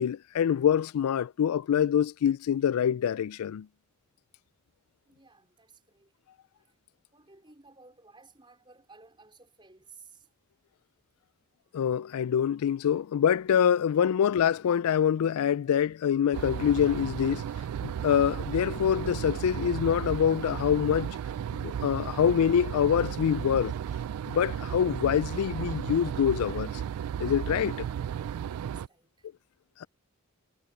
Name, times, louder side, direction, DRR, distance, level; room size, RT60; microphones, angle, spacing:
voice 1, 0.0-3.7 11.7-17.5 17.8-21.2 21.5-23.7 24.3-26.8 27.2-27.9, left 8 dB, 85° left, 0.3 m, -25 dB
voice 2, 5.1-6.1 6.6-6.7 7.1-10.3 28.0-29.3, right 4 dB, 20° right, 4.4 m, -56 dB
sound 1, 16.3-28.9, right 9 dB, 90° right, 0.3 m, -34 dB
head